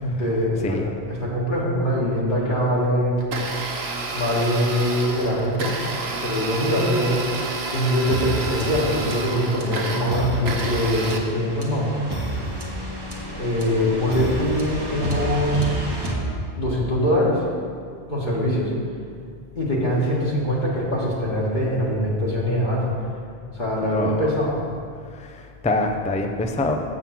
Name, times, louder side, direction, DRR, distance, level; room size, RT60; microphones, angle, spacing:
voice 1, 0.0-0.8 1.1-3.2 4.1-5.7 6.2-7.2 7.7-11.9 13.4-15.9 16.6-17.4 18.1-18.7 19.6-22.8 23.5-24.6, equal, 45° left, -6 dB, 1.8 m, -23 dB
Domestic sounds home sounds, 3.2-11.2, right 3 dB, 75° right, 1.2 m, -30 dB
sound 1, 8.1-16.9, right 1 dB, 25° right, 1.2 m, -30 dB
voice 2, 23.8-24.2 25.1-26.7, left 2 dB, 10° left, 4 dB, 0.3 m, -25 dB
7.5 x 7.4 x 5.8 m, 2.3 s
omnidirectional pair, 1.1 m